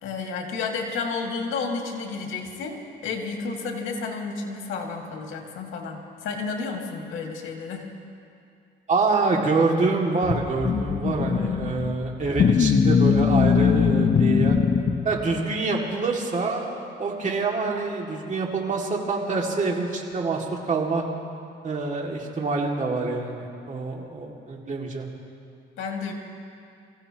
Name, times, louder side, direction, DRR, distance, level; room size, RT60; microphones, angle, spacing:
voice 1, 0.0-7.9 25.8-26.1, left 4 dB, 85° left, 1 dB, 2.1 m, -31 dB
voice 2, 8.9-14.6 15.0-16.7 17.0-21.0 21.6-25.1, right 3 dB, 40° right, -1 dB, 2.3 m, -26 dB
sound 1, 10.2-15.4, left 6 dB, 45° left, 0.7 m, -21 dB
24.5 x 15.5 x 3.0 m, 2.5 s
cardioid pair, 90°, 20 cm